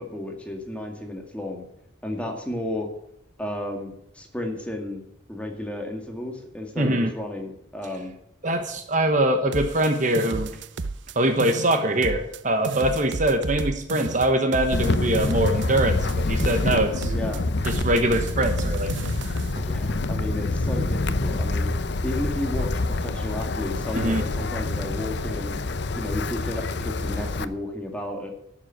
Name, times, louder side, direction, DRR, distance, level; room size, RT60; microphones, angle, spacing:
voice 1, 0.0-1.7 2.0-2.9 3.4-5.0 5.3-8.1 17.0-17.4 19.6-21.7 22.0-25.6 25.9-28.3, left 1 dB, 5° left, 2 dB, 2.1 m, -33 dB
voice 2, 6.8-7.1 8.4-10.5 11.1-17.1 17.7-18.9 19.6-19.7 23.9-24.2, right 1 dB, 40° right, 6 dB, 1.1 m, -23 dB
sound 1, 9.5-11.1 11.4-12.4 12.6-16.1 16.4-17.4 17.6-19.5, right 3 dB, 65° right, 0.6 m, -32 dB
Wind, 14.7-27.4, left 2 dB, 55° left, 0.7 m, -26 dB
11.5 x 7.3 x 9.1 m, 0.77 s
head